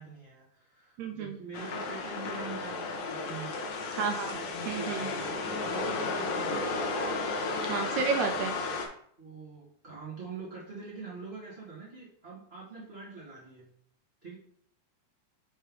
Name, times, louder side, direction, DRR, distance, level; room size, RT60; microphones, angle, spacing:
voice 1, 0.0-3.5 4.3-4.5 4.7-6.8 9.2-13.7 14.2-14.3, right 4 dB, 40° right, -7 dB, 0.8 m, -44 dB
voice 2, 1.0-1.4 3.9-4.4 4.7-5.1 7.6-8.6, right 5 dB, 85° right, 5 dB, 1.7 m, -31 dB
sound 1, 1.5-8.9, left 3 dB, 85° left, 2.7 m, -33 dB
6.4 x 3.3 x 5.2 m, 0.63 s
omnidirectional pair, 3.8 m